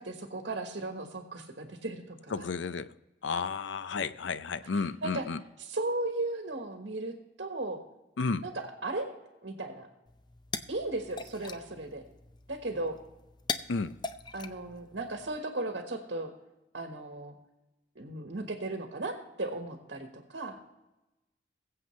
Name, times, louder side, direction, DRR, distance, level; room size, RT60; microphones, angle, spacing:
voice 1, 0.0-2.4 5.0-5.3 5.6-7.1 7.4-7.8 8.4-9.1 9.4-9.9 10.7-12.0 12.5-13.0 14.3-16.3 16.7-17.4 17.9-20.6, right 2 dB, 70° right, 4 dB, 1.3 m, -36 dB
voice 2, 2.3-2.9 3.2-5.4 8.2-8.5 13.7-14.0, left 4 dB, 85° left, 14 dB, 0.5 m, -32 dB
sound 1, 10.1-15.4, left 4 dB, 25° left, 0.5 m, -41 dB
22.0 x 7.7 x 3.2 m, 1.0 s
head